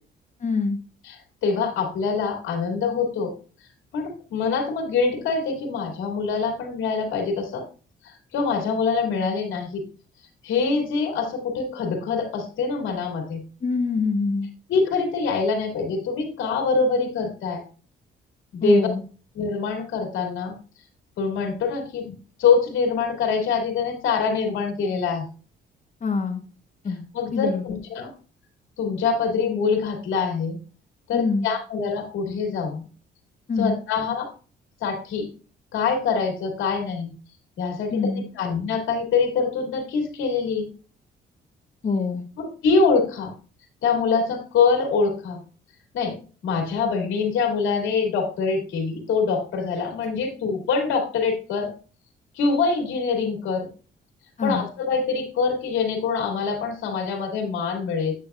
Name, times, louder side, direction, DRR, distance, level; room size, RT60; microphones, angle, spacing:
voice 1, 0.4-0.8 13.6-14.5 18.6-19.0 26.0-26.4 26.8-27.0 27.3-27.8 31.1-31.5 33.5-33.7 37.9-38.2 41.8-42.2 54.4-54.7, left 4 dB, 35° left, 4 dB, 1.0 m, -25 dB
voice 2, 1.0-3.3 3.9-7.6 8.0-9.9 10.4-13.4 14.7-17.6 18.5-18.9 19.3-20.5 21.2-22.1 22.4-25.2 27.1-28.1 28.8-30.6 31.1-32.8 33.6-34.3 34.8-35.3 35.7-37.1 37.6-40.7 42.4-43.3 43.8-45.4 45.9-46.2 46.4-51.7 52.4-53.7 54.4-58.2, left 5 dB, 80° left, 2 dB, 2.5 m, -24 dB
8.7 x 7.0 x 2.4 m, 0.38 s
cardioid pair, 90°, 20 cm